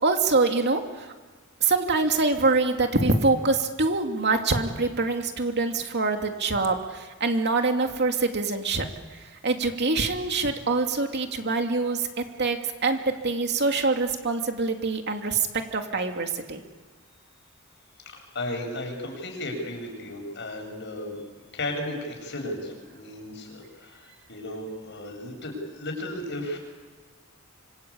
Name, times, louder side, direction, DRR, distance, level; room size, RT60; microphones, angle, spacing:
voice 1, 0.0-1.1 1.6-8.9 9.4-15.5 15.7-16.6, right 3 dB, 55° right, 4 dB, 2.7 m, -25 dB
voice 2, 18.1-21.2 21.5-26.6, left 1 dB, 60° left, 2 dB, 7.7 m, -34 dB
26.5 x 26.0 x 8.8 m, 1.4 s
head